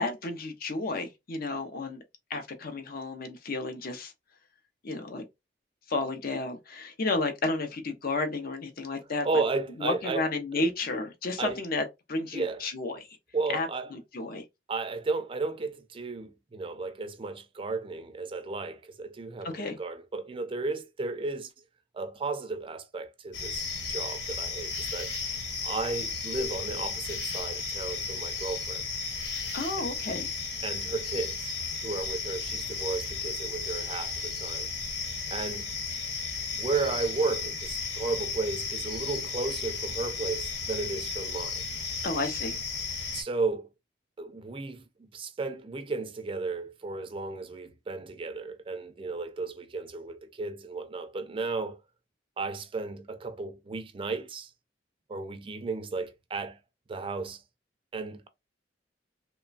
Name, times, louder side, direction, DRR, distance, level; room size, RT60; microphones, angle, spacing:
voice 1, 0.0-2.0 2.3-4.1 4.8-5.2 5.9-9.3 9.8-13.1 13.5-14.4 19.4-19.8 29.5-30.3 42.0-42.5, left 2 dB, 55° left, 0.6 m, -32 dB
voice 2, 9.2-10.2 11.4-11.6 12.3-12.6 13.3-13.9 14.7-21.5 21.9-25.1 25.6-28.8 29.8-29.9 30.6-31.6 31.8-34.7 35.3-35.7 36.5-41.6 43.1-43.7 44.2-44.8 45.1-51.8 52.4-54.5 55.1-56.6 56.9-57.4 57.9-58.3, right 3 dB, 30° right, 0.4 m, -34 dB
sound 1, 23.3-43.2, left 4 dB, 75° left, 1.2 m, -34 dB
3.0 x 2.2 x 2.4 m
head